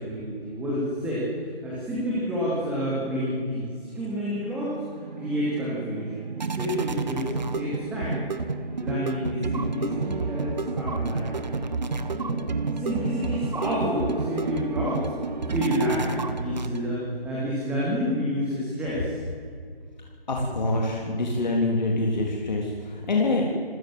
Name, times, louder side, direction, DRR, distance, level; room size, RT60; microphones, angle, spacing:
voice 1, 0.0-7.3 7.6-8.2 8.8-11.5 11.8-12.4 12.7-15.1 15.5-19.2, equal, 5° right, -7 dB, 2.7 m, -29 dB
sound 1, 4.3-17.1, right 4 dB, 45° right, 1.4 m, -30 dB
voice 2, 20.3-23.4, left 2 dB, 45° left, 0 dB, 3.6 m, -25 dB
27.0 x 15.5 x 7.8 m, 2.1 s
figure-of-eight pair, 155°, 30 cm